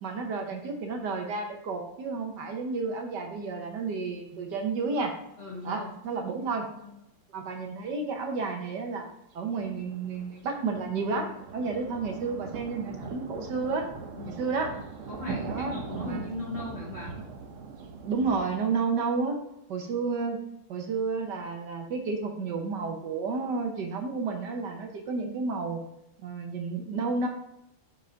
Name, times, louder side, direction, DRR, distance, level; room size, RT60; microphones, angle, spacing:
voice 1, 0.0-5.1 5.6-6.7 7.3-9.0 9.3-13.9 14.3-14.7 15.4-16.3 18.0-19.4 19.7-20.4 20.7-25.8 26.2-27.3, right 4 dB, 60° right, 3 dB, 1.4 m, -31 dB
voice 2, 5.4-5.9 6.4-7.0 14.1-14.4 15.1-17.2, left 3 dB, 35° left, -5 dB, 2.7 m, -39 dB
sound 1, 9.6-18.5, right 5 dB, 80° right, 0.7 m, -40 dB
7.0 x 5.3 x 3.8 m, 0.84 s
omnidirectional pair, 2.3 m